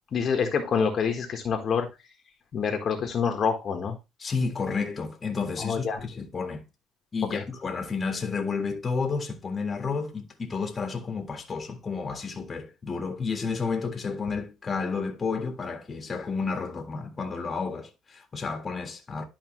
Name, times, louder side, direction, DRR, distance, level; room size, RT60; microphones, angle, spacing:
voice 1, 0.1-1.9 2.5-4.0 5.6-6.0 7.3-7.4, left 6 dB, 45° left, 1.5 m, -26 dB
voice 2, 4.2-6.6 7.1-19.2, left 4 dB, 25° left, 1.7 m, -31 dB
11.5 x 5.0 x 3.2 m
cardioid pair, 120°, 0 cm